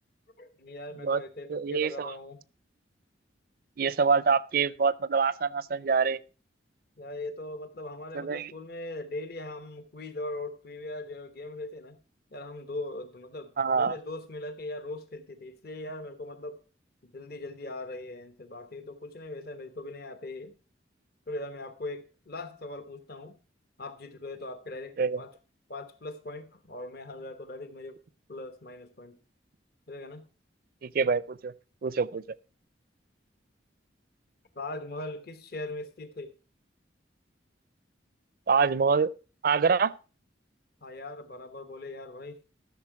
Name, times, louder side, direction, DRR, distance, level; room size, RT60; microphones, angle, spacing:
voice 1, 0.4-2.4 7.0-12.0 12.3-16.6 17.0-20.5 21.3-23.4 23.8-25.3 25.7-28.0 28.3-29.2 29.9-30.2 34.5-36.3 40.8-42.4, left 2 dB, 55° left, 1.1 m, -40 dB
voice 2, 1.5-2.1 3.8-6.2 8.1-8.5 13.6-14.0 25.0-25.2 30.8-31.5 31.8-32.2 38.5-39.1 39.4-39.9, right 5 dB, 50° right, 0.4 m, -25 dB
13.0 x 6.6 x 4.7 m
head